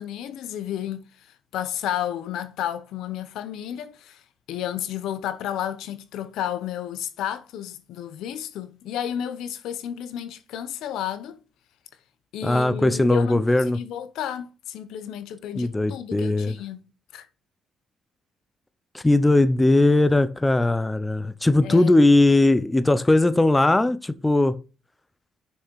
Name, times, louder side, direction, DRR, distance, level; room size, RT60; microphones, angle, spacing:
voice 1, 0.0-4.2 4.5-11.4 12.3-16.8 17.1-17.3 21.6-21.9, left 10 dB, 85° left, 0.9 m, -32 dB
voice 2, 12.4-13.8 15.5-16.5 18.9-24.5, left 2 dB, 15° left, 0.7 m, -19 dB
6.7 x 6.3 x 4.7 m
cardioid pair, 90°, 0 cm